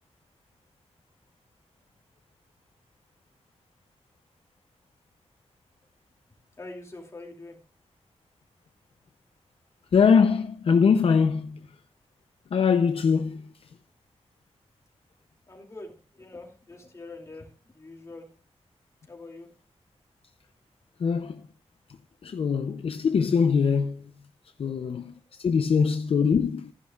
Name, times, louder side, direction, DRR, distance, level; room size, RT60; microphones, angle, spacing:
voice 1, 6.6-7.6 15.5-18.3 19.1-19.5 24.6-25.3, left 2 dB, 30° left, 2.7 m, -45 dB
voice 2, 9.9-11.6 12.5-13.7 21.0-21.5 22.2-24.1 24.6-26.7, left 6 dB, 65° left, 0.5 m, -23 dB
15.0 x 11.0 x 2.4 m
wide cardioid pair, 180°, 11 cm